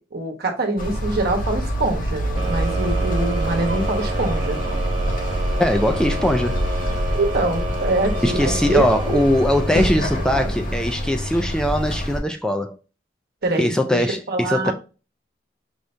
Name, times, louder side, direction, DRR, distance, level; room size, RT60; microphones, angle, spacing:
voice 1, 0.1-4.6 7.1-9.2 9.9-10.0 10.4-10.5 13.4-14.7, right 2 dB, 60° right, 1.1 m, -24 dB
sound 1, 0.8-12.2, equal, 50° left, 0.9 m, -25 dB
sound 2, 2.4-11.3, right 2 dB, 35° right, 0.8 m, -31 dB
voice 2, 5.6-6.6 8.2-12.8 13.6-14.7, left 1 dB, 5° left, 0.3 m, -21 dB
5.0 x 2.7 x 3.2 m
head